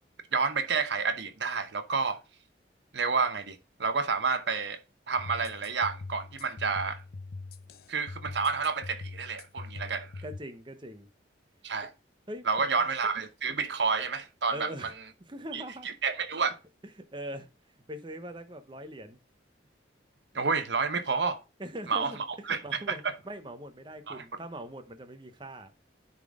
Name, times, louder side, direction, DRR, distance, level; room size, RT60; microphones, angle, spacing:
voice 1, 0.3-2.2 2.9-4.8 5.1-7.0 7.9-10.1 11.6-11.9 12.5-14.9 15.5-16.6 20.3-21.4 21.9-23.1 24.1-24.2, right 5 dB, 70° right, 0.9 m, -30 dB
sound 1, 5.2-10.4, left 3 dB, 55° left, 0.5 m, -43 dB
voice 2, 10.2-11.1 12.3-12.7 14.5-14.9 15.3-15.9 17.0-17.5 17.9-19.2 21.6-25.7, right 1 dB, 25° right, 0.8 m, -42 dB
9.8 x 3.9 x 3.6 m
head